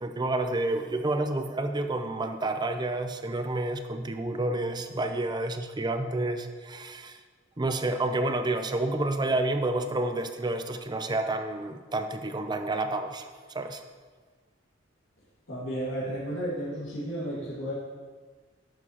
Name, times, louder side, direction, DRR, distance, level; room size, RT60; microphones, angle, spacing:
voice 1, 0.0-7.2 7.6-13.8, right 2 dB, 20° right, 7 dB, 0.5 m, -29 dB
voice 2, 15.5-17.7, right 1 dB, 80° left, -11 dB, 2.3 m, -33 dB
10.5 x 6.7 x 2.9 m, 1.4 s
head